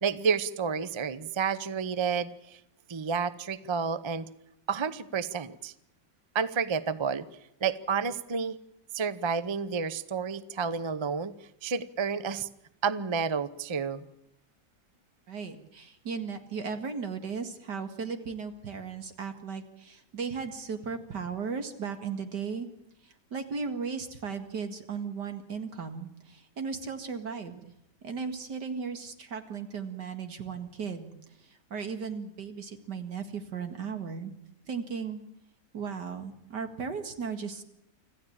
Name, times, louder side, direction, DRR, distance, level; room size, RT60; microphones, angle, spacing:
voice 1, 0.0-2.6 2.9-4.3 4.7-5.7 6.3-7.3 7.6-8.6 8.9-11.3 11.6-12.5 12.8-14.1, right 6 dB, 40° right, 15 dB, 0.4 m, -30 dB
voice 2, 15.3-22.7 23.0-27.7 28.0-31.1 31.4-34.3 34.7-35.2 35.7-37.6, right 5 dB, 70° right, 7 dB, 2.6 m, -36 dB
26.0 x 15.0 x 8.7 m, 0.81 s
omnidirectional pair, 1.9 m